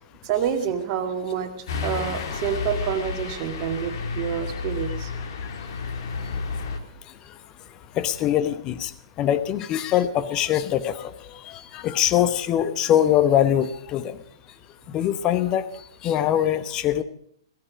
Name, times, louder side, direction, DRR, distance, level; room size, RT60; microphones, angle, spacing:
voice 1, 0.2-1.5 1.8-5.1, right 8 dB, 35° right, 5 dB, 2.1 m, -27 dB
sound 1, 1.7-6.8, left 4 dB, 50° left, 2.3 m, -31 dB
voice 2, 7.1-7.4 7.9-8.9 9.2-14.2 14.9-17.0, left 11 dB, 25° left, 12 dB, 1.0 m, -23 dB
16.5 x 14.0 x 5.1 m, 0.64 s
figure-of-eight pair, 115°, 3 cm